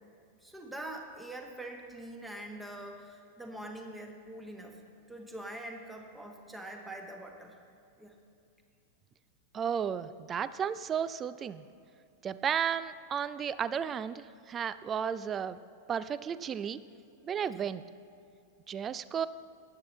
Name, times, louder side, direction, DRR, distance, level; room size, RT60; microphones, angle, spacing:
voice 1, 0.3-4.8 5.1-7.6 8.0-8.1 17.5-17.6, right 1 dB, 5° right, 3 dB, 1.3 m, -44 dB
voice 2, 9.5-11.6 12.2-15.6 15.9-16.8 17.2-17.8 18.7-19.3, right 8 dB, 25° right, 15 dB, 0.4 m, -33 dB
15.5 x 10.0 x 3.1 m, 2.5 s
figure-of-eight pair, 90°, 0 cm